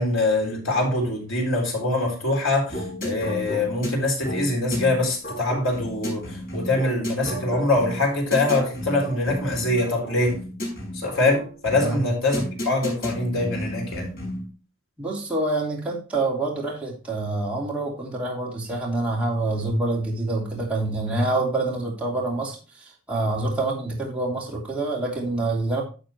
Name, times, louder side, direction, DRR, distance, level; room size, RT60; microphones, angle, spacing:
voice 1, 0.0-10.4 10.9-14.1, left 2 dB, 70° left, 3.8 m, -24 dB
sound 1, 2.7-14.5, equal, 50° left, 5.7 m, -32 dB
voice 2, 15.0-22.6 22.8-25.8, right 2 dB, 5° right, 3.0 m, -26 dB
11.5 x 6.7 x 3.1 m
head